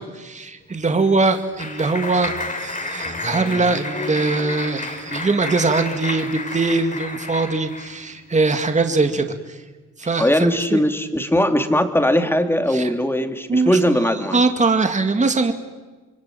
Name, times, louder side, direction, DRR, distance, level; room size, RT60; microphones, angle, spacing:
voice 1, 0.0-9.6 10.0-10.8 12.7-12.9 13.5-13.7 14.3-15.5, right 3 dB, 25° right, 7 dB, 2.3 m, -21 dB
Clapping, 0.8-8.0, left 3 dB, 25° left, 3.7 m, -31 dB
voice 2, 10.2-14.4, equal, 5° left, 7 dB, 2.7 m, -19 dB
27.5 x 23.0 x 9.3 m, 1.3 s
cardioid pair, 90°, 30 cm